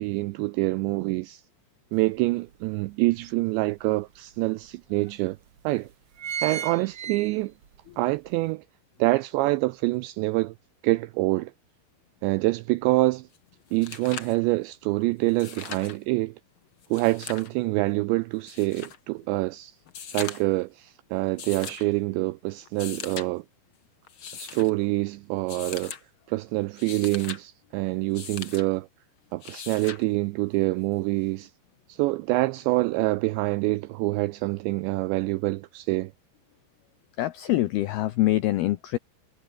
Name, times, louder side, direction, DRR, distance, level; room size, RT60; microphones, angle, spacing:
voice 1, 0.0-1.4 1.9-5.4 5.6-5.9 6.4-7.5 8.0-8.6 9.0-10.5 10.8-11.5 12.2-13.3 13.7-16.4 16.9-19.8 20.1-23.4 24.3-25.9 26.3-28.9 29.3-31.5 31.9-36.1, right 21 dB, 90° right, 2.5 m, -26 dB
sound 1, 2.0-2.1 2.5-3.7 4.3-4.4 4.7-4.8 5.5-5.7 5.9-7.8 8.2-8.3, right 8 dB, 50° right, 1.9 m, -34 dB
sound 2, 13.3-13.4 13.7-14.4 15.3-16.0 16.8-17.5 18.5-19.0 19.9-20.6 21.4-21.9 22.7-23.3 24.1-24.7 25.5-26.0 26.6-27.4 28.1-28.7 29.4-30.0 31.4-31.5, left 7 dB, 65° left, 1.3 m, -39 dB
voice 2, 37.2-39.0, left 16 dB, 85° left, 2.2 m, -24 dB
omnidirectional pair, 5.7 m